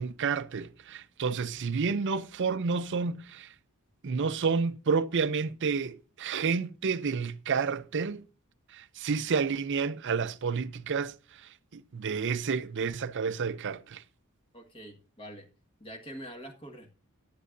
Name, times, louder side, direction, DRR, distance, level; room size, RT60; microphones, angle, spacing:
voice 1, 0.0-3.5 4.0-8.2 8.7-14.0, right 5 dB, 55° right, 0.5 m, -30 dB
voice 2, 14.5-15.5 15.8-16.9, equal, 25° left, 1.6 m, -45 dB
14.5 x 10.5 x 2.6 m
head